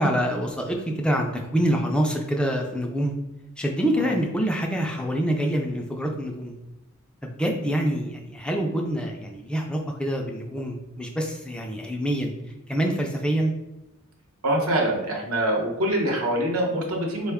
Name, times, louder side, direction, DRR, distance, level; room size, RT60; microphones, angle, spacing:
voice 1, 0.0-3.2 3.6-6.6 7.2-12.3 12.7-13.5, equal, 5° left, 1 dB, 0.3 m, -26 dB
voice 2, 14.4-17.3, right 1 dB, 80° right, 0 dB, 0.9 m, -24 dB
4.5 x 2.2 x 3.4 m, 0.99 s
head